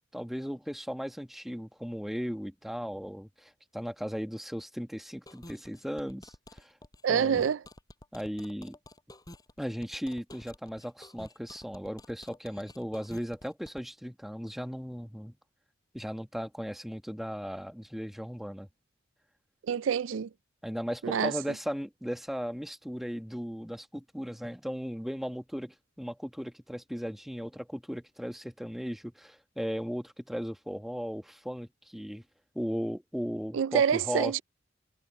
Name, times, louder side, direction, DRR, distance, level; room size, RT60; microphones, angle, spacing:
voice 1, 0.1-6.7 7.1-7.5 8.1-8.7 9.6-15.4 15.9-18.7 20.6-32.2 32.5-34.4, equal, ahead, 1.5 m, -37 dB
sound 1, 5.3-13.8, left 1 dB, 20° left, 5.5 m, -50 dB
voice 2, 7.0-7.6 19.7-20.3 21.0-21.3 33.5-34.4, right 7 dB, 75° right, 0.4 m, -26 dB
head